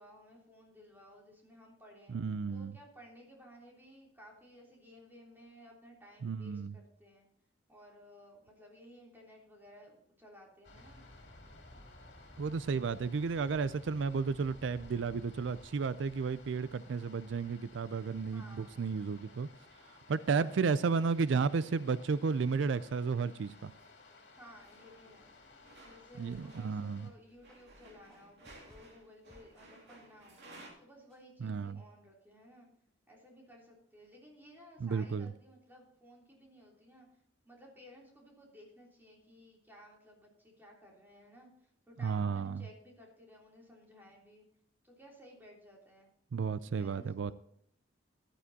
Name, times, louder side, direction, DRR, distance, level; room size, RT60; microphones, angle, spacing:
voice 1, 0.0-2.1 2.5-7.3 7.7-11.0 18.3-18.8 20.3-20.7 24.4-25.3 25.8-30.4 30.8-32.7 33.1-44.4 44.8-46.1 46.7-47.3, equal, 10° right, 3.2 m, -57 dB
voice 2, 2.1-2.8 6.2-6.8 12.4-19.5 20.1-23.7 26.2-27.1 31.4-31.8 34.8-35.3 42.0-42.6 46.3-47.3, right 5 dB, 85° right, 0.4 m, -33 dB
sound 1, 10.6-27.1, left 2 dB, 65° left, 2.8 m, -56 dB
sound 2, 13.4-16.3 17.6-17.9 18.5-19.7 19.9-30.7, right 2 dB, 60° right, 3.2 m, -61 dB
sound 3, 26.1-26.6 26.9-27.0 27.4-27.6 28.1-28.9 29.3-29.5 29.8-30.0 30.5-30.6 31.1-31.2, equal, 5° left, 2.2 m, -59 dB
14.0 x 11.5 x 2.8 m
head